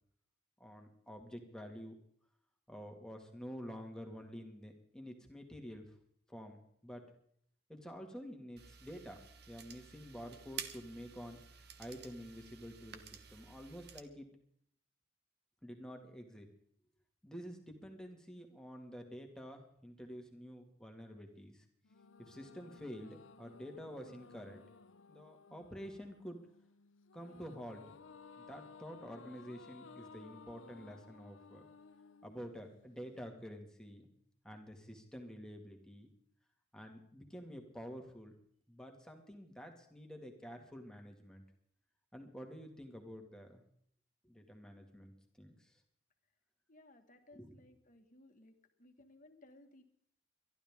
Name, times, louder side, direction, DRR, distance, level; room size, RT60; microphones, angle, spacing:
voice 1, 0.6-2.0 2.7-5.9 6.3-7.1 7.7-9.2 9.5-11.4 11.8-14.3 15.6-16.5 17.2-21.6 22.2-24.6 25.1-26.4 27.1-28.0 28.4-31.7 32.2-34.1 34.4-36.1 36.7-38.3 38.7-41.4 42.1-43.6 44.2-45.8 47.4-47.5, equal, 5° left, 3 dB, 2.1 m, -49 dB
sound 1, 8.6-14.0, right 7 dB, 55° right, 1.2 m, -51 dB
sound 2, 21.8-33.2, left 5 dB, 85° left, 0.7 m, -58 dB
voice 2, 46.7-49.8, left 1 dB, 40° left, 5 dB, 1.8 m, -61 dB
23.0 x 12.5 x 3.7 m, 0.65 s
head